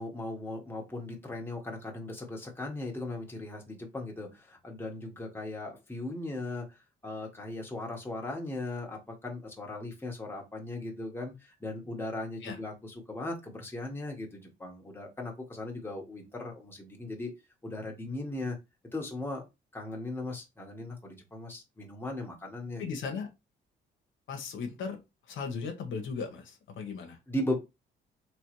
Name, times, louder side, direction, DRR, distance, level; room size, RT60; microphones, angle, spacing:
voice 1, 0.0-6.8 7.0-17.3 17.6-18.6 18.9-19.4 19.7-22.9 27.3-27.6, left 2 dB, 10° left, 1.3 m, -38 dB
voice 2, 22.8-23.3 24.3-25.0 25.3-27.2, left 5 dB, 75° left, 1.0 m, -37 dB
3.3 x 3.1 x 3.0 m
cardioid pair, 90°, 20 cm